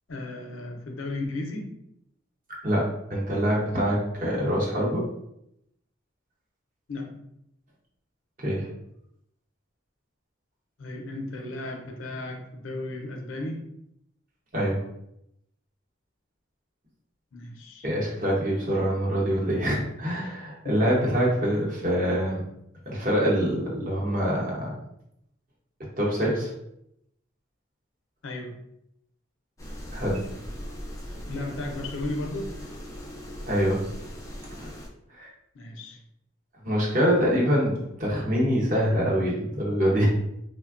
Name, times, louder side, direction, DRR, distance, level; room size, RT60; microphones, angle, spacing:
voice 1, 0.1-1.7 6.9-7.2 10.8-13.7 17.3-17.9 20.6-20.8 28.2-28.6 31.3-32.5 35.5-36.0, left 2 dB, 75° left, 3 dB, 0.5 m, -34 dB
voice 2, 2.6-5.1 8.4-8.7 14.5-14.8 17.8-22.4 22.9-24.7 26.0-26.5 29.9-30.2 33.5-33.8 34.6-34.7 35.1-35.3 36.6-40.1, equal, 40° right, -4 dB, 0.8 m, -25 dB
sound 1, 29.6-34.9, equal, 15° left, 0.4 m, -39 dB
3.2 x 2.1 x 2.4 m, 0.78 s
head